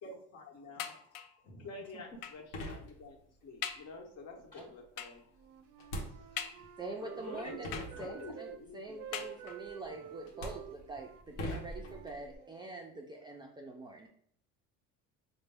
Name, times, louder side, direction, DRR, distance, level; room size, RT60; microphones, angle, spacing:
voice 1, 0.0-1.0 1.6-5.2 6.1-6.5 7.0-9.4, left 2 dB, 50° left, 1 dB, 1.1 m, -49 dB
voice 2, 0.6-0.7 1.4-1.7 4.5-4.6 6.6-6.7 7.4-7.5 8.0-8.1 9.9-10.1, left 2 dB, 25° left, -5 dB, 0.9 m, -54 dB
sound 1, 0.8-1.5 2.2-2.5 3.1-3.2 3.6-4.0 5.0-5.3 6.4-7.0 7.7-8.3 9.1-9.8 10.6-10.7 11.0-11.1, left 9 dB, 70° left, 0.5 m, -43 dB
sound 2, 2.1-2.2 2.5-3.4 5.8-6.7 7.3-7.4 7.6-8.6 9.7-9.9 10.2-12.4, left 1 dB, 85° left, 1.0 m, -42 dB
Wind instrument woodwind instrument, 5.3-8.6 8.9-12.7, right 10 dB, 70° right, 0.5 m, -50 dB
voice 3, 6.8-14.1, right 2 dB, 15° right, -1 dB, 0.3 m, -45 dB
4.1 x 2.2 x 3.4 m, 0.65 s
cardioid pair, 120°, 33 cm